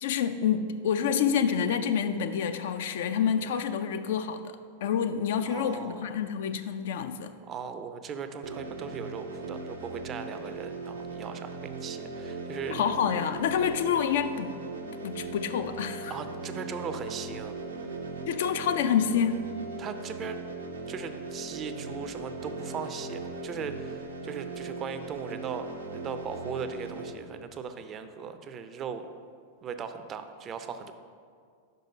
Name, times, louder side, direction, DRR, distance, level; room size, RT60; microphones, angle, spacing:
voice 1, 0.0-7.3 12.7-14.6 15.0-16.1 18.3-19.4, left 7 dB, 60° left, 9 dB, 0.4 m, -28 dB
voice 2, 5.4-6.1 7.5-12.8 16.1-17.6 19.8-20.4 20.9-29.1 29.6-30.9, right 6 dB, 30° right, 9 dB, 0.4 m, -38 dB
sound 1, 8.4-27.1, right 3 dB, 80° right, 0.6 m, -39 dB
5.3 x 5.3 x 5.3 m, 2.2 s
figure-of-eight pair, 95°, 0 cm